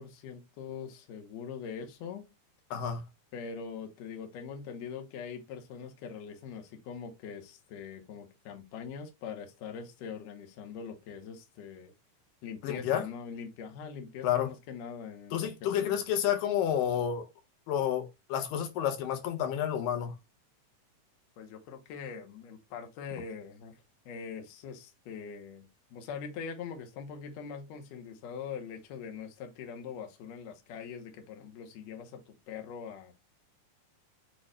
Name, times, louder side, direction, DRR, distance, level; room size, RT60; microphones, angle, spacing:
voice 1, 0.0-2.3 3.3-11.9 12.4-16.0 21.4-23.8 24.1-33.1, left 6 dB, 70° left, 1.9 m, -42 dB
voice 2, 2.7-3.0 12.6-13.0 14.2-14.5 15.3-17.3 17.7-20.1, left 9 dB, 85° left, 2.4 m, -30 dB
6.5 x 2.3 x 3.1 m
omnidirectional pair, 3.7 m